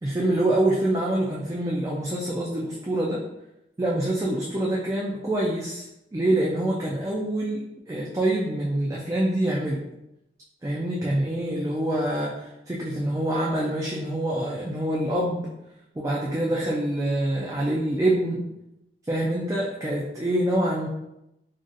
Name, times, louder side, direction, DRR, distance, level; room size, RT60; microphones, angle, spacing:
voice 1, 0.0-3.2 3.8-9.8 10.6-15.5 15.9-18.5 19.1-20.9, right 1 dB, 20° right, -5 dB, 0.3 m, -26 dB
2.4 x 2.4 x 3.8 m, 0.87 s
head